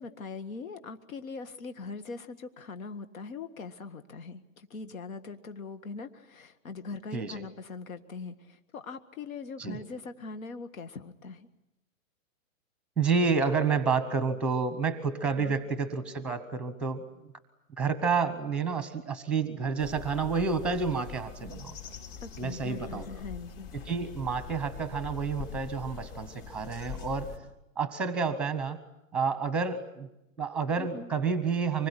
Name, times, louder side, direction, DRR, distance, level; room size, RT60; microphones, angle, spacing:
voice 1, 0.0-11.5 15.4-15.6 22.2-23.7 30.8-31.1, left 4 dB, 85° left, 9 dB, 1.9 m, -41 dB
voice 2, 7.1-7.5 9.6-9.8 13.0-17.0 17.8-21.8 22.4-23.1 23.9-27.3 27.8-28.8 29.1-30.1 30.4-31.9, right 5 dB, 5° right, 12 dB, 0.9 m, -29 dB
sound 1, 19.8-27.4, left 8 dB, 45° left, 4.0 m, -43 dB
25.0 x 21.0 x 10.0 m, 0.91 s
hypercardioid pair, 170°, 40 cm